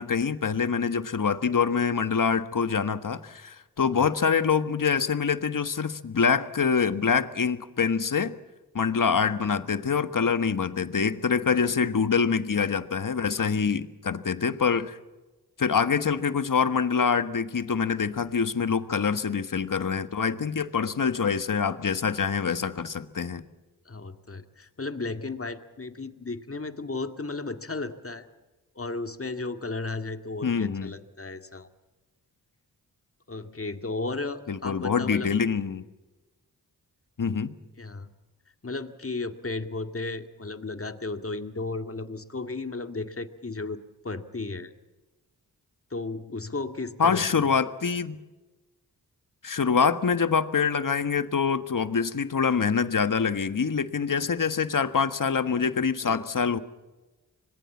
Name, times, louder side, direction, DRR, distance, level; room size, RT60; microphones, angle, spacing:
voice 1, 0.0-8.3 8.7-15.0 15.6-23.4 30.4-30.9 34.5-35.8 37.2-37.5 47.0-48.2 49.4-56.6, left 6 dB, 50° left, 12 dB, 1.5 m, -25 dB
voice 2, 23.9-28.3 28.8-31.7 33.3-35.3 37.8-38.1 38.6-44.7 45.9-47.2 56.0-56.2, left 3 dB, 35° left, 8 dB, 2.1 m, -34 dB
26.0 x 20.5 x 7.3 m, 1.2 s
cardioid pair, 45°, 40 cm